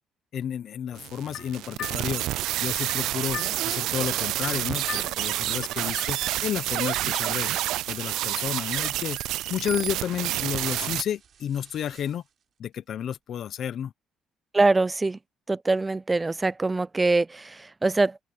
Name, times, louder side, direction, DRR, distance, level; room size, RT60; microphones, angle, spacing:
voice 1, 0.3-2.2 2.6-7.5 7.9-9.2 9.5-12.2 12.6-13.9, left 9 dB, 50° left, 0.8 m, -31 dB
sound 1, 0.9-6.3, left 12 dB, 70° left, 4.1 m, -42 dB
sound 2, 1.0-11.0, right 15 dB, 80° right, 0.4 m, -29 dB
sound 3, 5.6-12.4, right 8 dB, 40° right, 4.6 m, -54 dB
voice 2, 14.5-15.2 15.5-18.2, right 3 dB, 15° right, 0.4 m, -23 dB
cardioid pair, 160°, 0 cm